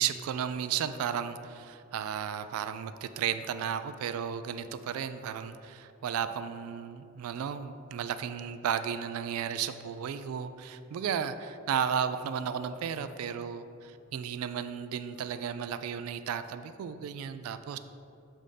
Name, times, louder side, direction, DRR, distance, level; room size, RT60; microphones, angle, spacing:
voice 1, 0.0-17.8, right 8 dB, 85° right, 12 dB, 0.3 m, -34 dB
7.3 x 2.6 x 4.9 m, 2.5 s
head